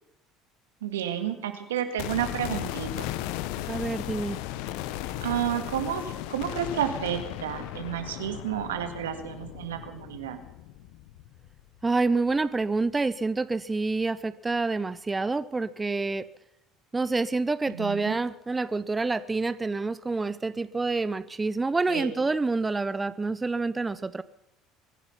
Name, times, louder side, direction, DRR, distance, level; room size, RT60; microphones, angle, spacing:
voice 1, 0.8-3.1 5.2-6.0 6.3-10.4 17.7-18.2 21.9-22.1, right 10 dB, 80° right, 8 dB, 1.8 m, -31 dB
sound 1, 2.0-12.0 12.3-12.4, left 13 dB, 70° left, 0.8 m, -36 dB
voice 2, 3.7-4.4 11.8-16.3 16.9-24.2, right 3 dB, 20° right, 16 dB, 0.6 m, -27 dB
23.5 x 10.0 x 5.7 m, 0.88 s
hypercardioid pair, 65°, 0 cm